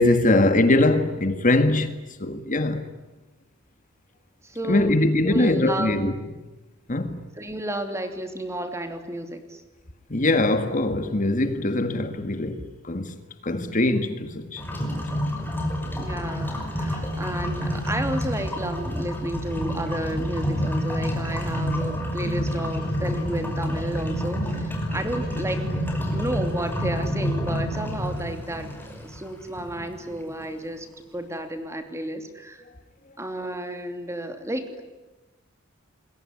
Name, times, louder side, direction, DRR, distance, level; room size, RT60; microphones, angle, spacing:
voice 1, 0.0-2.8 4.7-6.1 6.9-7.2 10.1-13.2 13.4-14.6, left 2 dB, 40° left, 1.8 m, -22 dB
voice 2, 4.4-5.0 5.2-6.0 7.4-9.6 16.0-30.9 31.1-32.7 33.2-34.8, right 1 dB, 15° right, 2.9 m, -32 dB
sound 1, 14.6-30.5, equal, 10° left, 5.5 m, -28 dB
27.5 x 21.5 x 9.8 m
head